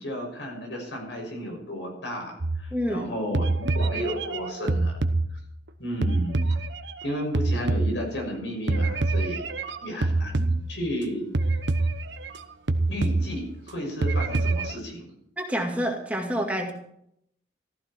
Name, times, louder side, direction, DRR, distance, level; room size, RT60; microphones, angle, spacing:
voice 1, 0.0-5.0 5.8-6.5 7.0-9.4 9.8-11.2 12.9-15.1, equal, 85° left, 2 dB, 6.3 m, -33 dB
sound 1, 2.4-3.0 3.3-5.7 6.0-8.4 8.7-11.0 11.3-12.4 12.7-13.7 14.0-14.7, right 2 dB, 75° right, 1.0 m, -26 dB
voice 2, 2.7-3.0 15.4-16.7, equal, 10° right, 1 dB, 2.1 m, -27 dB
15.0 x 14.5 x 4.5 m, 0.71 s
head